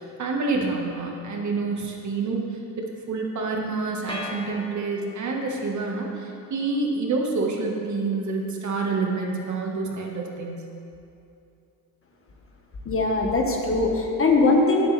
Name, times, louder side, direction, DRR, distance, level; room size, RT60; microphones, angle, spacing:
voice 1, 0.0-10.7, right 3 dB, 50° right, 0 dB, 1.8 m, -28 dB
sound 1, 4.1-5.4, left 2 dB, 15° left, 1.6 m, -37 dB
voice 2, 12.8-14.9, left 3 dB, 35° left, 1 dB, 1.6 m, -21 dB
16.5 x 8.2 x 3.5 m, 2.7 s
cardioid pair, 100°, 38 cm